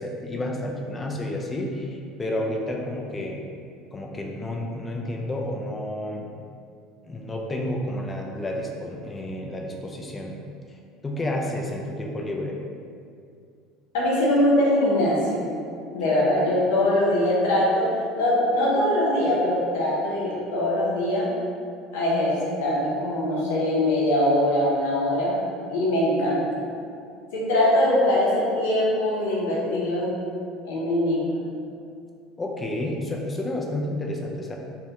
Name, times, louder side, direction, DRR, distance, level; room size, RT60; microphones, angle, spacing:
voice 1, 0.0-3.4 3.9-6.3 7.0-10.4 11.0-12.6 32.4-34.6, left 1 dB, 20° left, 0 dB, 0.3 m, -30 dB
voice 2, 13.9-15.5 15.9-17.9 18.2-21.3 21.9-25.4 25.7-26.5 27.3-30.1 30.6-31.3, left 1 dB, 85° left, -5 dB, 0.6 m, -22 dB
2.2 x 2.1 x 2.8 m, 2.4 s
supercardioid pair, 100°, 0 cm